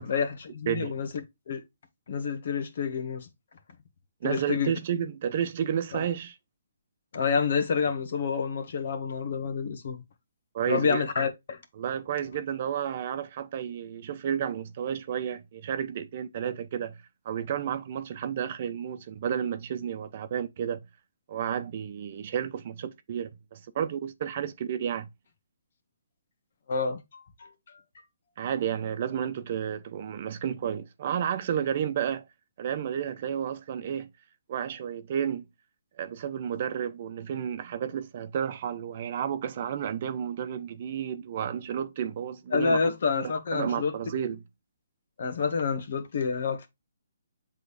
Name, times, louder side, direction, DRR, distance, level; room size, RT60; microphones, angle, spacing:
voice 1, 0.0-1.6 2.1-3.3 4.2-4.7 5.9-6.0 7.1-10.0 10.6-11.6 26.7-27.5 27.9-28.0 42.5-43.9 45.2-46.7, left 5 dB, 60° left, 1.6 m, -28 dB
voice 2, 4.2-6.3 10.5-11.0 11.8-17.0 17.2-20.8 21.3-25.1 28.4-32.2 32.6-34.1 34.5-35.4 36.0-42.8 43.2-44.4, right 9 dB, 45° right, 0.8 m, -31 dB
7.9 x 3.8 x 3.4 m
hypercardioid pair, 150°, 0 cm